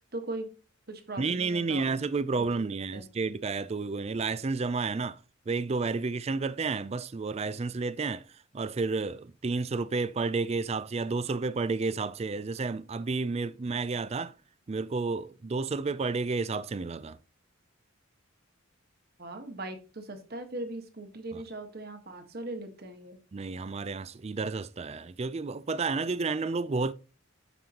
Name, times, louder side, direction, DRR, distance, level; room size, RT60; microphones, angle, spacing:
voice 1, 0.1-0.6 0.9-2.0 2.4-2.6 2.9-3.0 19.2-23.2, right 2 dB, 50° right, 1.5 m, -39 dB
voice 2, 1.2-5.2 5.5-8.2 8.5-14.3 14.7-17.2 23.3-26.9, right 4 dB, 30° right, 0.4 m, -31 dB
9.2 x 6.8 x 2.9 m
head